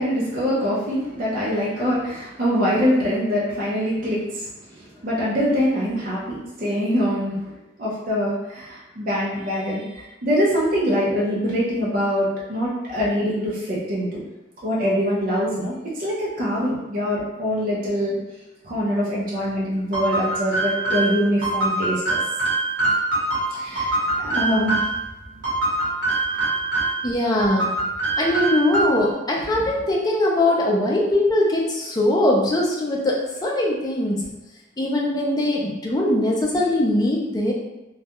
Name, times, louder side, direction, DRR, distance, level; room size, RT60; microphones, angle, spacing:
voice 1, 0.0-7.5 7.8-14.2 14.6-18.2 18.6-22.2 23.5-24.8 25.3-25.4 26.3-26.6, equal, 45° right, -6 dB, 0.6 m, -24 dB
sound 1, 19.9-25.0 25.4-27.1 27.4-29.1, right 2 dB, 65° right, 1.0 m, -24 dB
voice 2, 27.0-27.7 28.2-34.3 34.8-37.5, left 1 dB, 20° left, -2 dB, 0.4 m, -21 dB
2.3 x 2.2 x 2.8 m, 0.97 s
head